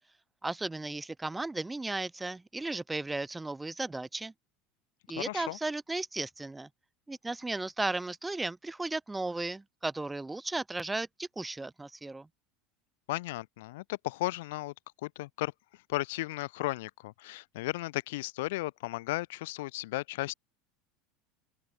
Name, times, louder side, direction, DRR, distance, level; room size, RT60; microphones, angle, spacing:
voice 1, 0.4-4.3 5.1-6.7 7.1-12.3, right 2 dB, 5° right, 1.3 m, -35 dB
voice 2, 5.2-5.6 13.1-14.7 15.0-15.5 15.9-20.3, left 19 dB, 85° left, 3.8 m, -35 dB
open air
cardioid pair, 170°, 0 cm